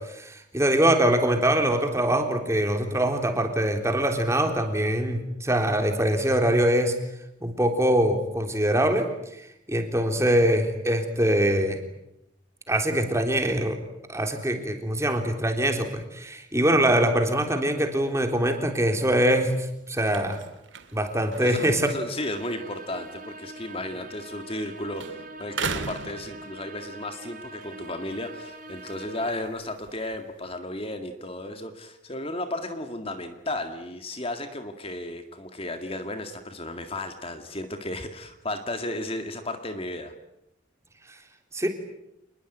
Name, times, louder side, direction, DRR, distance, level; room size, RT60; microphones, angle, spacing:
voice 1, 0.0-7.0 7.4-9.1 9.4-11.8 12.7-13.8 14.1-20.4 20.9-21.9 41.5-41.7, right 1 dB, 15° right, 5 dB, 3.6 m, -23 dB
sound 1, 19.0-24.7 24.9-27.0 27.4-30.5, right 5 dB, 75° right, 2.5 m, -40 dB
voice 2, 21.4-40.1, left 1 dB, 30° left, 7 dB, 2.1 m, -34 dB
sound 2, 22.2-29.4, right 2 dB, 45° right, 4.0 m, -43 dB
28.0 x 21.0 x 9.3 m, 0.82 s
head